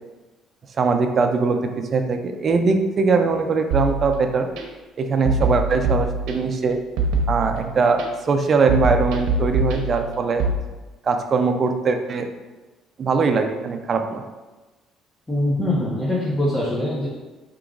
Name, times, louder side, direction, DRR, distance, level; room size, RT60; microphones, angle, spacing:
voice 1, 0.8-4.5 5.0-6.8 7.3-10.4 11.0-12.3 13.0-14.2, right 4 dB, 30° right, 5 dB, 0.4 m, -21 dB
sound 1, 3.7-4.6 5.3-6.6 7.0-8.0 8.7-10.6, right 2 dB, 80° right, 0.7 m, -24 dB
voice 2, 15.3-17.1, left 1 dB, 10° left, -6 dB, 0.8 m, -23 dB
4.8 x 3.0 x 3.7 m, 1.2 s
cardioid pair, 165°, 0 cm